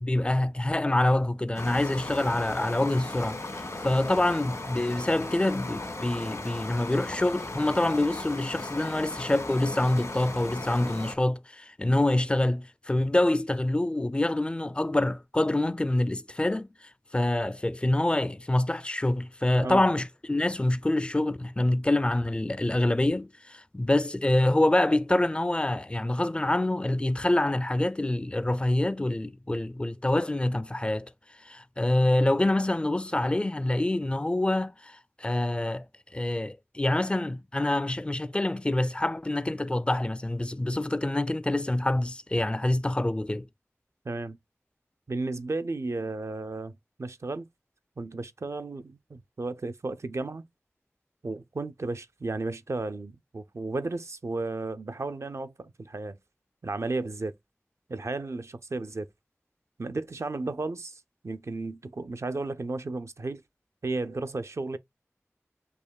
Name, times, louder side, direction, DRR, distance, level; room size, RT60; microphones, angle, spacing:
voice 1, 0.0-3.4 3.8-16.7 17.1-31.1 31.4-35.9 36.1-43.5, left 1 dB, 20° left, 0.4 m, -26 dB
sound 1, 1.5-11.1, left 2 dB, 75° left, 1.4 m, -37 dB
voice 2, 44.0-44.4 45.1-47.5 48.0-50.4 51.2-56.2 56.6-57.3 57.9-59.1 59.8-63.4 63.8-64.8, right 3 dB, 65° right, 0.4 m, -34 dB
6.6 x 2.9 x 2.2 m
wide cardioid pair, 55°, 5 cm